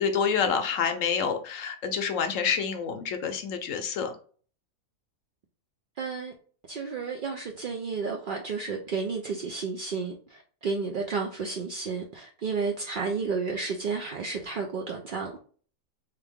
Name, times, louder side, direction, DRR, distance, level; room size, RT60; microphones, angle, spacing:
voice 1, 0.0-4.1, left 6 dB, 70° left, 0.9 m, -27 dB
voice 2, 6.0-6.3 6.7-15.3, right 5 dB, 65° right, 0.5 m, -32 dB
3.4 x 3.3 x 3.5 m
omnidirectional pair, 1.5 m